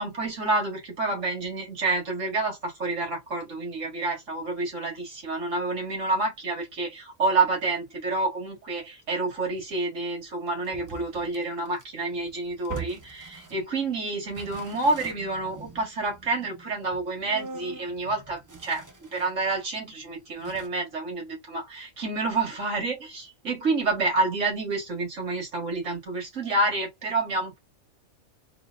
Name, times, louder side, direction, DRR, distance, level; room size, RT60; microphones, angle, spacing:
voice 1, 0.0-27.6, right 3 dB, 75° right, 2.1 m, -28 dB
sound 1, 10.6-13.8 14.2-19.4 19.8-19.9 20.4-20.7, right 4 dB, 25° right, 0.5 m, -43 dB
4.0 x 2.8 x 2.5 m
omnidirectional pair, 1.3 m